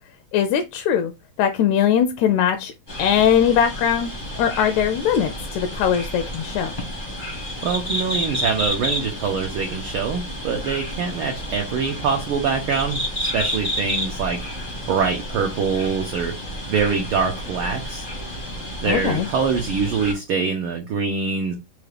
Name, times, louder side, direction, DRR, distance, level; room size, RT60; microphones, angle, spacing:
voice 1, 0.3-1.1 1.4-2.7 3.0-4.1 4.4-6.7 18.9-19.3, left 9 dB, 80° left, 1.9 m, -20 dB
sound 1, 2.9-20.1, equal, 50° left, 0.5 m, -30 dB
voice 2, 7.6-14.4 14.9-16.3 16.7-18.1 18.8-21.5, right 5 dB, 80° right, 1.1 m, -24 dB
5.2 x 2.4 x 3.3 m
omnidirectional pair, 3.3 m